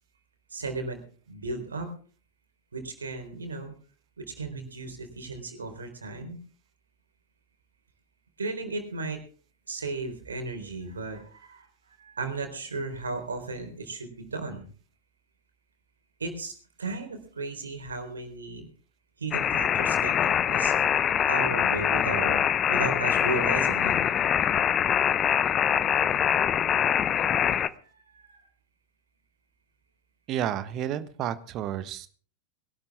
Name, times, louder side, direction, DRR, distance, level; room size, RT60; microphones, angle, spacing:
voice 1, 0.5-1.0 1.3-1.9 2.7-3.7 4.2-6.4 8.4-9.2 9.7-11.7 12.0-14.7 16.2-16.5 16.8-18.7 19.2-20.7 21.3-22.4 22.7-24.0 26.7-28.5, right 3 dB, 70° right, 6 dB, 4.0 m, -35 dB
sound 1, 19.3-27.7, left 9 dB, 25° left, 0.8 m, -24 dB
voice 2, 30.3-32.1, right 10 dB, 35° right, 13 dB, 1.3 m, -31 dB
22.0 x 12.0 x 3.6 m, 0.41 s
figure-of-eight pair, 90°, 0 cm